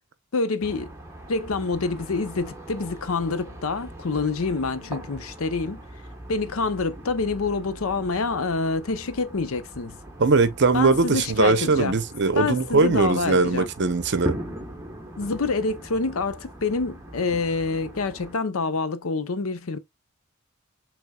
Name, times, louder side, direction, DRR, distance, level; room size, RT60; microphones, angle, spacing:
voice 1, 0.3-0.9 1.3-5.8 6.3-10.0 10.7-12.0 12.4-13.7 15.2-19.8, left 4 dB, 70° left, 0.7 m, -27 dB
sound 1, 0.6-18.3, right 1 dB, 15° right, 1.1 m, -40 dB
voice 2, 10.2-14.4, right 4 dB, 55° right, 0.7 m, -20 dB
6.2 x 3.4 x 2.3 m
head